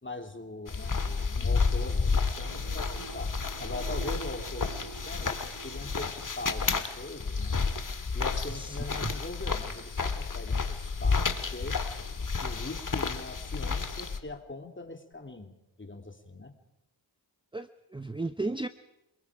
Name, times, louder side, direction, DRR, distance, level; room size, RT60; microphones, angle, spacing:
voice 1, 0.0-3.3 3.6-7.6 8.1-11.8 12.4-16.5, left 2 dB, 25° left, 5 dB, 3.0 m, -42 dB
sound 1, 0.7-14.2, left 4 dB, 40° left, 2.0 m, -31 dB
Apparaat aangesloten, 1.4-7.1 7.5-8.1 15.1-15.2, right 7 dB, 65° right, 2.3 m, -47 dB
voice 2, 17.5-18.7, right 2 dB, 10° right, 11 dB, 0.8 m, -34 dB
27.5 x 22.0 x 5.0 m, 0.89 s
cardioid pair, 60°, 48 cm